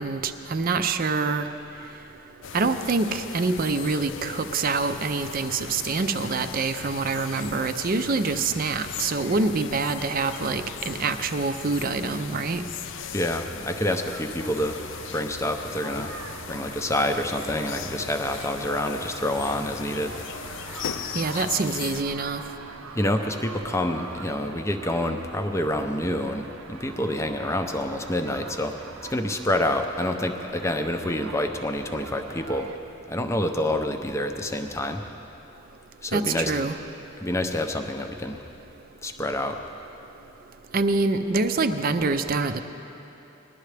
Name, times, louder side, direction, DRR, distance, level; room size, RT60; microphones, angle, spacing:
voice 1, 0.0-1.5 2.5-12.6 21.1-22.4 36.1-36.8 40.7-42.6, right 3 dB, 45° right, 8 dB, 0.5 m, -25 dB
sound 1, 2.4-22.0, left 8 dB, 60° left, 0.4 m, -38 dB
voice 2, 13.1-14.8 15.1-16.1 16.5-20.1 22.9-28.7 29.1-32.7 33.1-35.0 36.0-36.5 37.2-38.4 39.0-39.6, left 1 dB, 15° left, 6 dB, 0.6 m, -27 dB
sound 2, 13.7-32.8, right 4 dB, 85° right, 0.7 m, -43 dB
20.5 x 11.5 x 3.3 m, 2.9 s
head